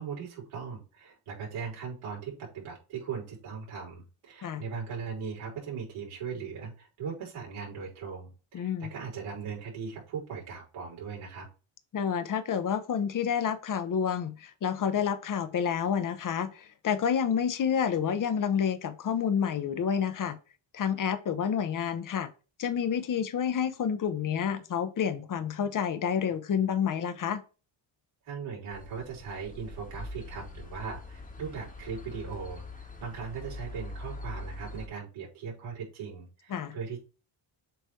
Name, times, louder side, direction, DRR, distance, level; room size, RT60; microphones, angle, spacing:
voice 1, 0.0-11.5 28.3-32.6 33.0-37.0, right 6 dB, 85° right, 3.9 m, -39 dB
voice 2, 8.5-8.9 11.9-20.4 20.7-22.3 22.6-27.4 36.5-36.8, left 7 dB, 40° left, 0.9 m, -29 dB
sound 1, 28.7-34.9, left 2 dB, 15° left, 1.2 m, -43 dB
7.8 x 3.3 x 4.5 m
cardioid pair, 125°, 49 cm